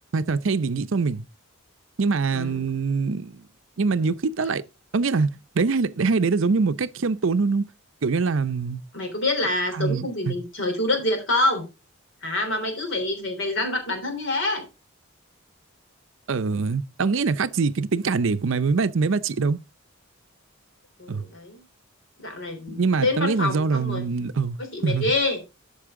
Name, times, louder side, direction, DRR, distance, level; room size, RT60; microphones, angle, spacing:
voice 1, 0.1-1.2 2.0-3.4 3.8-4.6 4.9-7.7 8.0-8.8 9.7-10.4 16.3-19.6 21.1-21.2 22.7-24.6 24.8-25.1, right 4 dB, 65° right, 0.5 m, -24 dB
voice 2, 2.3-2.6 8.9-11.6 12.2-14.6 21.0-21.6 22.2-24.0 24.7-25.4, left 2 dB, 60° left, 3.4 m, -26 dB
13.5 x 5.4 x 3.7 m
head